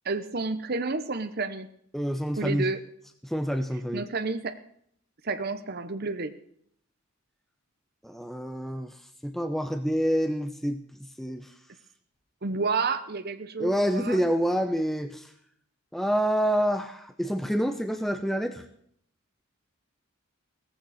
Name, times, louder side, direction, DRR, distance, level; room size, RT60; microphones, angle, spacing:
voice 1, 0.0-1.7 2.4-2.8 3.9-4.6 5.2-6.3 12.4-14.2, right 3 dB, 45° right, 10 dB, 0.9 m, -30 dB
voice 2, 1.9-2.7 3.2-4.0 8.0-8.9 9.2-10.8 11.2-11.5 13.6-15.3 15.9-18.6, equal, ahead, 7 dB, 0.7 m, -27 dB
17.5 x 15.0 x 4.2 m, 0.66 s
head